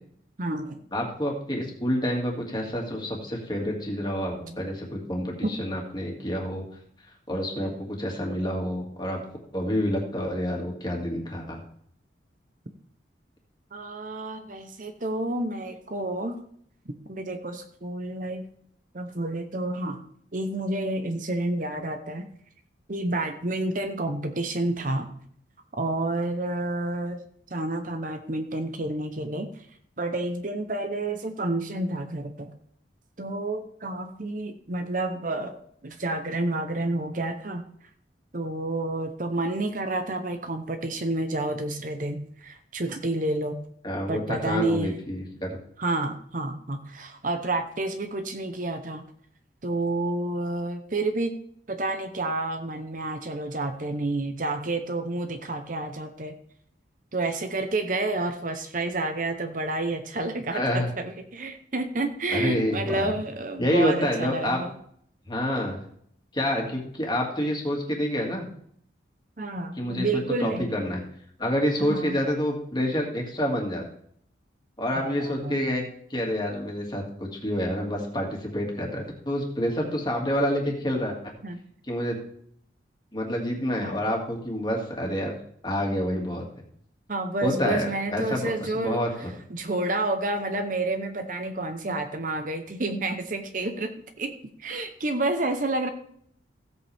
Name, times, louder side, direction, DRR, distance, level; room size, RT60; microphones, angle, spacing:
voice 1, 0.4-0.9 4.4-4.7 5.4-5.5 13.7-16.4 16.9-18.5 18.9-20.0 20.3-22.3 22.9-25.1 25.8-27.2 27.5-29.7 30.0-32.5 33.2-35.6 35.8-37.6 38.3-43.6 44.1-44.9 45.8-49.0 49.6-51.3 51.7-56.3 57.1-64.7 69.4-70.7 71.8-72.2 75.0-75.6 81.4-81.6 83.8-84.0 87.1-94.3 94.6-95.9, right 2 dB, 45° right, 7 dB, 0.8 m, -30 dB
voice 2, 0.9-6.6 7.3-9.2 9.5-11.6 43.8-45.6 60.5-60.9 62.3-63.1 63.6-64.6 65.3-65.8 66.3-68.4 69.8-71.0 71.4-73.8 74.8-75.8 76.1-81.3 81.9-82.2 83.1-85.4 85.6-86.4 87.4-89.1, equal, 25° left, 0 dB, 2.3 m, -28 dB
16.0 x 8.2 x 3.5 m, 0.65 s
head